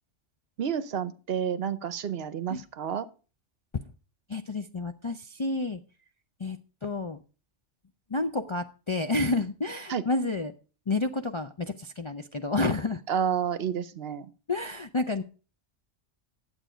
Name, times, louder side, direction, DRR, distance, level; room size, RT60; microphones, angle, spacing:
voice 1, 0.6-3.1 9.9-10.0 13.1-14.3, right 8 dB, 60° right, 14 dB, 0.9 m, -30 dB
voice 2, 4.3-5.8 6.4-7.2 8.1-10.5 10.9-13.0 14.5-15.2, left 2 dB, 40° left, 5 dB, 0.4 m, -30 dB
11.5 x 8.0 x 5.0 m, 0.36 s
omnidirectional pair, 1.2 m